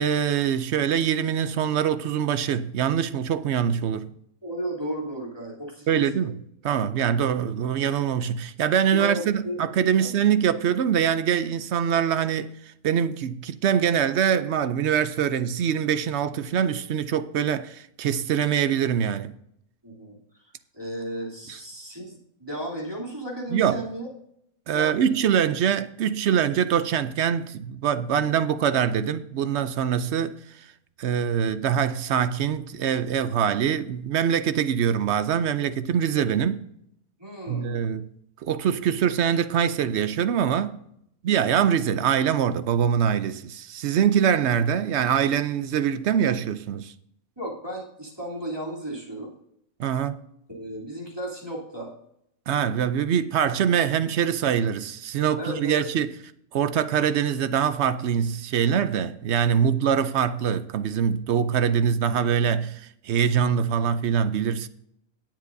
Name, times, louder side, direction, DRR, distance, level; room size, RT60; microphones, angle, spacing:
voice 1, 0.0-4.1 5.9-6.3 6.6-12.5 12.8-19.3 23.5-23.8 24.7-30.4 31.0-36.7 37.5-38.1 38.4-40.8 41.2-46.9 49.8-50.2 52.5-56.1 56.5-64.7, right 8 dB, 60° right, 0.8 m, -24 dB
voice 2, 4.4-6.3 8.9-9.6 10.0-10.1 19.8-20.4 20.7-24.1 24.7-25.1 37.2-37.8 47.4-49.3 50.5-51.9 55.4-55.8, right 1 dB, 15° right, 3.0 m, -34 dB
18.0 x 7.5 x 2.7 m
omnidirectional pair, 1.5 m